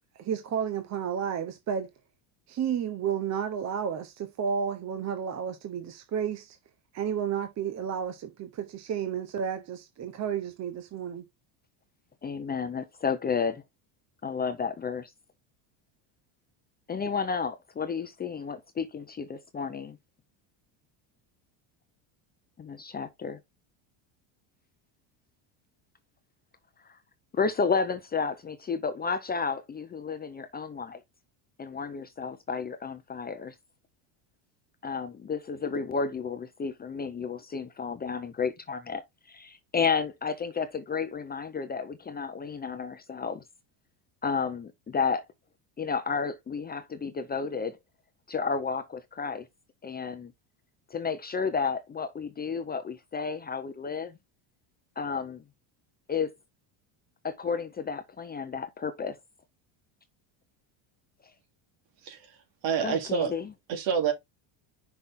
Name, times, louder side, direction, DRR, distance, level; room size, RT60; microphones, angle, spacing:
voice 1, 0.2-1.9 2.5-6.6 6.9-11.2, right 8 dB, 35° right, 0.9 m, -32 dB
voice 2, 12.2-13.6 14.2-15.1 16.9-20.0 22.6-23.4 27.3-31.0 31.6-33.5 34.8-39.0 39.3-43.4 44.2-45.2 45.8-47.8 48.3-49.5 49.8-50.3 50.9-54.1 55.0-55.4 56.1-56.3 57.2-59.2 62.8-63.5, left 5 dB, 20° left, 0.7 m, -32 dB
voice 3, 62.0-62.4 62.6-63.4 63.7-64.1, right 7 dB, 65° right, 3.3 m, -27 dB
6.0 x 5.7 x 3.6 m
cardioid pair, 140°, 49 cm